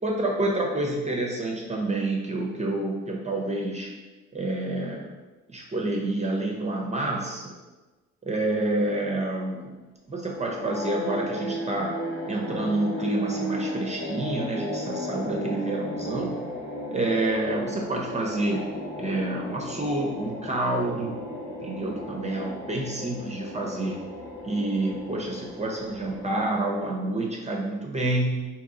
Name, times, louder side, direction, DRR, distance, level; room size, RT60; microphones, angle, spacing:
voice 1, 0.0-3.9 4.3-5.1 5.5-7.6 8.2-9.7 10.1-11.9 12.3-16.4 16.9-18.7 19.0-21.2 21.6-24.0 24.4-28.4, right 2 dB, 20° right, -1 dB, 0.6 m, -28 dB
sound 1, 10.3-26.9, left 1 dB, 50° left, 1.2 m, -35 dB
3.7 x 2.9 x 3.7 m, 1.2 s
cardioid pair, 90°, 30 cm